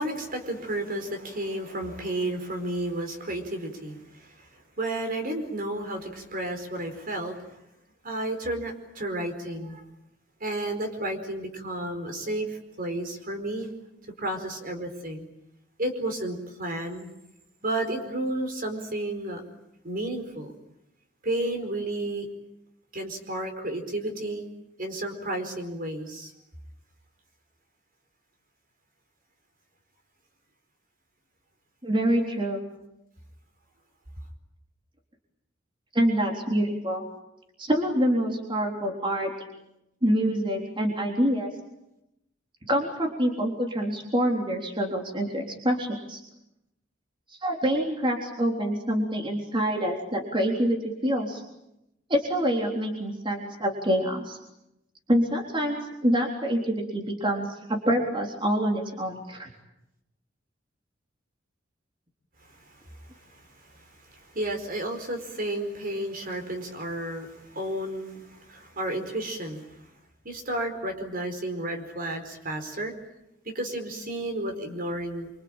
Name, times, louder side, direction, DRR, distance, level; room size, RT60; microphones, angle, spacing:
voice 1, 0.0-7.6 8.0-9.8 10.4-13.7 14.2-15.3 15.8-17.1 17.6-19.4 19.8-20.5 21.2-22.3 22.9-24.5 24.8-26.3 62.5-69.7 70.2-72.9 73.4-75.3, right 1 dB, 50° right, 6 dB, 4.6 m, -32 dB
voice 2, 31.8-32.6 35.9-37.0 37.6-39.3 40.0-41.5 42.7-46.2 47.3-51.4 52.1-54.4 55.1-59.5, equal, 25° right, 1 dB, 3.7 m, -26 dB
25.5 x 25.5 x 8.9 m, 0.87 s
head